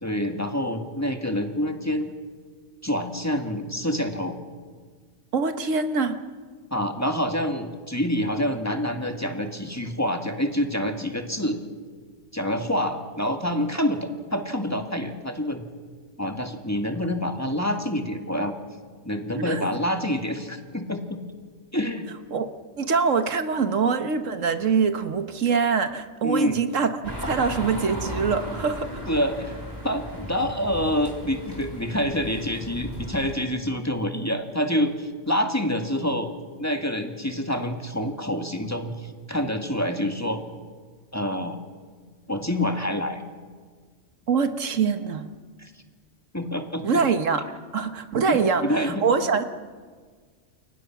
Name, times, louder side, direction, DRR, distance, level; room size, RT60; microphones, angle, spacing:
voice 1, 0.0-2.0 2.8-4.3 6.7-11.6 12.3-15.6 16.2-18.5 19.0-21.2 21.7-22.0 23.7-23.8 26.2-26.6 29.1-29.6 29.8-36.3 36.6-40.4 41.1-41.6 42.3-43.2 45.6-45.7 46.3-46.8 48.3-49.1, equal, 15° left, 4 dB, 1.9 m, -27 dB
voice 2, 5.3-6.2 19.4-19.7 22.3-28.9 44.3-45.3 46.8-47.4 47.7-49.4, right 5 dB, 85° right, 9 dB, 1.6 m, -24 dB
sound 1, 27.0-33.3, equal, 15° right, 4.3 m, -36 dB
29.5 x 23.0 x 6.0 m, 1.6 s
omnidirectional pair, 1.3 m